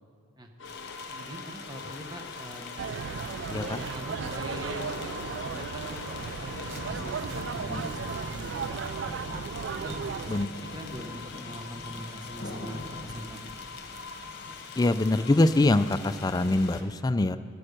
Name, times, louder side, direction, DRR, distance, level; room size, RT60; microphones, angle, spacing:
sound 1, 0.6-16.0, left 4 dB, 75° left, 0.7 m, -43 dB
sound 2, 0.6-16.8, left 3 dB, 55° left, 1.1 m, -43 dB
voice 1, 1.1-2.9 3.5-4.9 5.2-8.5 9.7-10.0 10.3-13.6, equal, 20° right, 3 dB, 1.1 m, -43 dB
sound 3, 2.8-10.5, right 6 dB, 65° right, 0.3 m, -36 dB
voice 2, 14.8-17.4, left 2 dB, 20° left, 11 dB, 0.3 m, -23 dB
13.0 x 8.6 x 6.6 m, 2.2 s
head